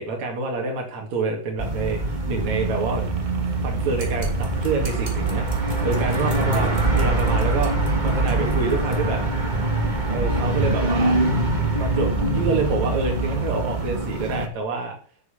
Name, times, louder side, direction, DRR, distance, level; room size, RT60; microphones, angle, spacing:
voice 1, 0.0-3.0 3.6-9.2 10.1-11.2 11.8-15.0, right 4 dB, 50° right, 0 dB, 3.2 m, -27 dB
sound 1, 1.6-14.5, right 2 dB, 85° right, 0.4 m, -24 dB
sound 2, 2.5-13.9, right 3 dB, 70° right, 3.3 m, -32 dB
sound 3, 4.0-9.0, right 1 dB, 15° right, 2.6 m, -43 dB
11.0 x 7.8 x 7.4 m, 0.43 s
omnidirectional pair, 4.5 m